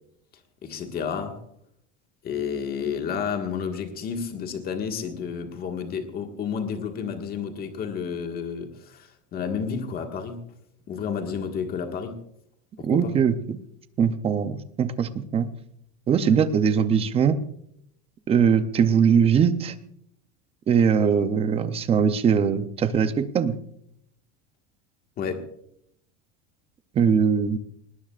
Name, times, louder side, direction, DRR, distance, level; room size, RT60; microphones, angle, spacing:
voice 1, 0.6-1.4 2.2-10.4 10.9-12.2 12.8-13.1 25.2-25.5, left 6 dB, 25° left, 1.6 m, -31 dB
voice 2, 12.8-13.6 14.0-15.5 16.1-17.4 18.3-19.7 20.7-23.6 26.9-27.6, right 7 dB, 15° right, 0.5 m, -21 dB
20.0 x 19.5 x 2.4 m
cardioid pair, 175°, 36 cm